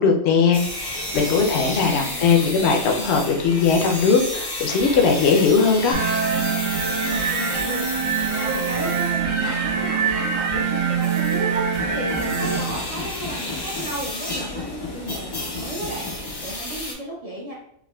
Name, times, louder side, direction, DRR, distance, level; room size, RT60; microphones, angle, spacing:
voice 1, 0.0-6.0, left 5 dB, 65° left, 3 dB, 0.8 m, -19 dB
sound 1, 0.5-16.9, left 2 dB, 30° left, 0.4 m, -32 dB
voice 2, 1.4-2.4 7.1-16.1 16.4-17.5, right 1 dB, 45° right, -4 dB, 0.5 m, -34 dB
sound 2, 5.9-12.6, right 6 dB, 75° right, 1.0 m, -24 dB
4.7 x 2.2 x 2.2 m, 0.72 s
omnidirectional pair, 1.3 m